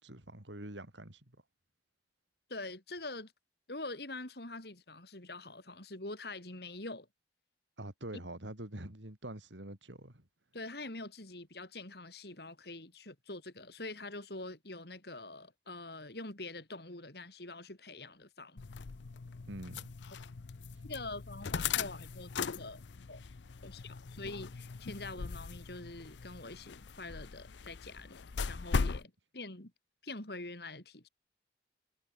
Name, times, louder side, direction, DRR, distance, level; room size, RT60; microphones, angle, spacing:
voice 1, 0.0-1.4 7.8-10.3 19.5-19.9 20.7-20.8, right 1 dB, 85° right, 4.3 m, -45 dB
voice 2, 2.5-3.3 3.7-7.1 10.5-18.6 20.8-23.2 23.6-28.2 28.5-29.7 30.0-31.1, left 2 dB, 60° left, 3.7 m, -45 dB
sound 1, 18.6-29.0, left 5 dB, 80° left, 0.6 m, -39 dB
head